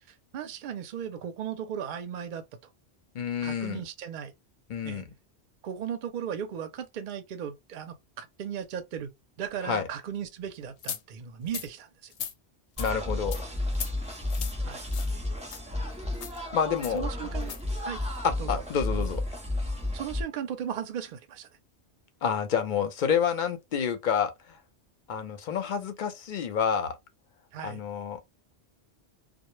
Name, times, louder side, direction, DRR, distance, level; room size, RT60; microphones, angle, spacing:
voice 1, 0.3-2.4 3.4-4.3 4.8-5.0 5.6-9.1 9.4-12.1 14.7-14.8 16.9-18.0 18.4-18.6 19.9-21.5 27.5-27.8, right 8 dB, 55° right, 0.6 m, -36 dB
voice 2, 3.1-3.8 4.7-5.0 9.6-9.9 12.8-13.4 16.5-17.1 18.2-19.2 22.2-24.3 25.1-27.0 27.6-28.2, left 7 dB, 60° left, 0.5 m, -28 dB
sound 1, 10.8-11.0 11.5-11.7 12.1-12.3 12.8-12.9 13.3-13.4 13.7-13.9 14.3-14.5 14.9-15.1 15.5-15.6 16.1-16.4 16.8-17.0 17.4-17.6, left 8 dB, 90° left, 0.9 m, -37 dB
sound 2, 12.8-20.2, left 1 dB, 10° right, 0.3 m, -32 dB
2.1 x 2.0 x 3.0 m
omnidirectional pair, 1.1 m